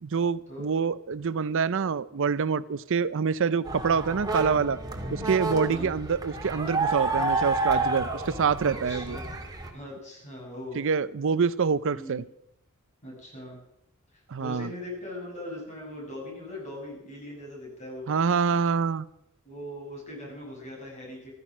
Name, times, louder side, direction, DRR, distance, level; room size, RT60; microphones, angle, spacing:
voice 1, 0.0-4.8 5.1-9.2 10.7-12.2 14.3-14.7 18.1-19.1, right 6 dB, 65° right, 17 dB, 0.5 m, -26 dB
sound 1, 3.6-9.7, right 3 dB, 20° right, 2.3 m, -30 dB
voice 2, 5.7-6.0 8.6-9.3 9.7-10.8 11.9-12.2 13.0-13.6 14.1-18.1 19.4-21.3, left 1 dB, 35° left, 0 dB, 6.8 m, -40 dB
15.5 x 13.5 x 6.1 m, 0.76 s
head